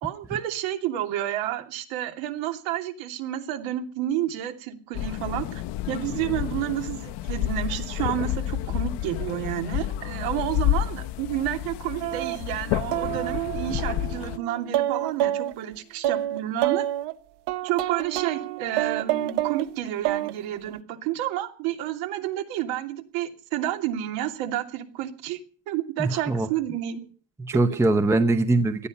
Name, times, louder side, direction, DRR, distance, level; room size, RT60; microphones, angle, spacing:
voice 1, 0.0-16.8 17.6-25.4 25.7-27.1 27.7-27.8, right 12 dB, 85° right, 3.0 m, -30 dB
sound 1, 4.9-14.4, left 13 dB, 60° left, 0.9 m, -30 dB
sound 2, 12.0-12.4 12.9-15.5 16.0-17.1 17.5-19.7 20.0-20.3 20.7-20.8, right 13 dB, 60° right, 1.0 m, -28 dB
voice 2, 26.0-26.5 27.4-28.9, right 2 dB, 5° right, 0.7 m, -22 dB
18.5 x 13.5 x 5.5 m
cardioid pair, 150°, 47 cm